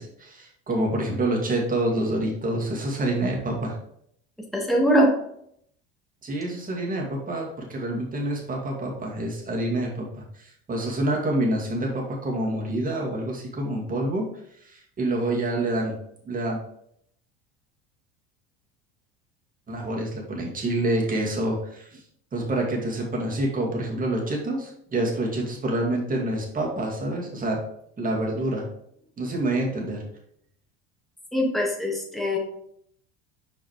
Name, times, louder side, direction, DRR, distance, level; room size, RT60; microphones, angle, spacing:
voice 1, 0.0-3.8 6.2-14.3 14.6-15.9 16.2-16.6 19.7-22.0 22.3-27.6 28.0-28.7 29.2-30.1, right 1 dB, 25° right, -1 dB, 2.2 m, -27 dB
voice 2, 4.5-5.1 31.3-32.4, equal, ahead, -1 dB, 1.7 m, -22 dB
5.7 x 5.1 x 3.2 m, 0.69 s
hypercardioid pair, 90°, 32 cm